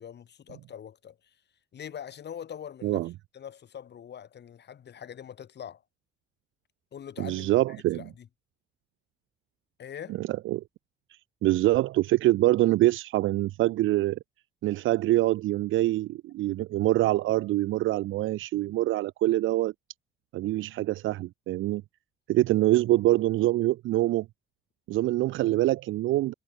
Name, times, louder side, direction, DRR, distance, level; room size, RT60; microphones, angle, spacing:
voice 1, 0.0-1.4 1.7-3.0 3.3-5.8 6.9-8.3 9.8-10.2, left 9 dB, 60° left, 6.7 m, -43 dB
voice 2, 2.8-3.1 7.2-8.0 10.2-10.6 11.4-14.2 14.6-19.7 20.3-21.8 22.3-24.3 24.9-26.3, right 16 dB, 80° right, 0.6 m, -25 dB
cardioid pair, 90°, 20 cm